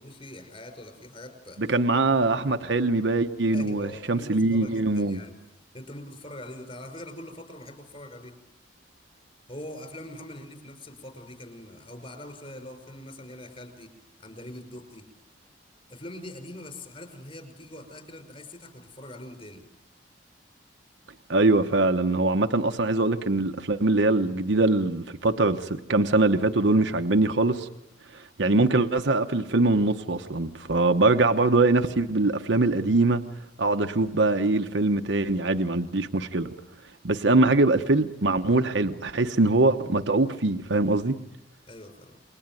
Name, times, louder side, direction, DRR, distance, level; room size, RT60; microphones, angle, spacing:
voice 1, 0.0-1.7 3.5-5.4 5.7-8.4 9.5-15.1 15.9-19.7 41.7-42.2, left 1 dB, 35° left, 5.6 m, -43 dB
voice 2, 1.6-5.2 21.3-27.7 28.1-33.2 33.6-36.5 37.0-41.2, right 2 dB, 75° right, 1.1 m, -23 dB
29.0 x 22.0 x 9.2 m
head